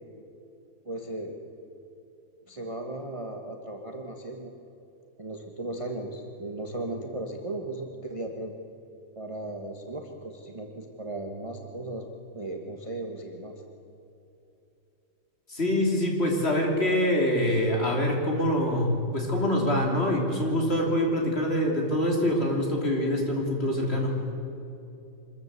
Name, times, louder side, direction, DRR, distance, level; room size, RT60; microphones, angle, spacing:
voice 1, 0.8-1.4 2.5-4.5 5.2-8.5 9.1-12.0 12.3-13.5, right 2 dB, 20° right, 2 dB, 1.3 m, -36 dB
voice 2, 15.5-24.2, left 1 dB, 35° left, 0 dB, 3.4 m, -25 dB
25.0 x 14.0 x 8.2 m, 2.8 s
omnidirectional pair, 2.0 m